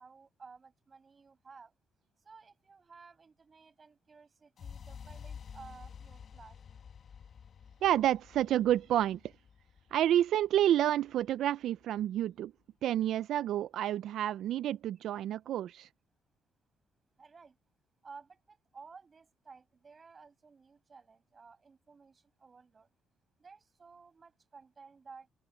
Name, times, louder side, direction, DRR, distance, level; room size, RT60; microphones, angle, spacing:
voice 1, 0.0-1.7 2.2-6.6 17.2-17.6 18.0-22.9 23.4-25.3, right 5 dB, 30° right, 7.0 m, -55 dB
Vocal Bit, 4.6-12.5, left 7 dB, 45° left, 1.5 m, -51 dB
voice 2, 7.8-9.3 9.9-12.5 12.8-15.9, right 12 dB, 75° right, 0.3 m, -29 dB
open air
cardioid pair, 125°, 0 cm